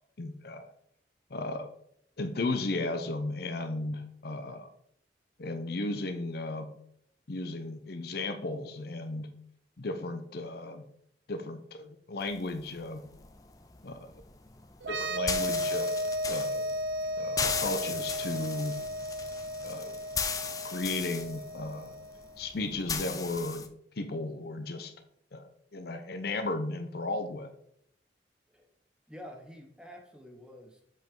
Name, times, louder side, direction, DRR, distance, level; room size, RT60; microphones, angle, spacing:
voice 1, 0.2-0.6 1.3-1.7 2.2-4.7 5.4-6.7 7.3-9.3 9.8-10.8 11.3-13.0 13.8-14.2 14.9-16.0 16.3-16.7 17.2-18.8 19.6-20.0 20.6-21.9 22.4-23.7 24.0-24.9 25.3-27.5, left 2 dB, 60° left, 7 dB, 0.7 m, -35 dB
sound 1, 12.2-23.7, left 5 dB, 20° left, 0.5 m, -38 dB
sound 2, 14.8-22.3, equal, 85° right, 0.7 m, -34 dB
voice 2, 29.1-30.8, equal, 5° right, 2 dB, 1.0 m, -48 dB
7.6 x 5.2 x 3.7 m, 0.69 s
head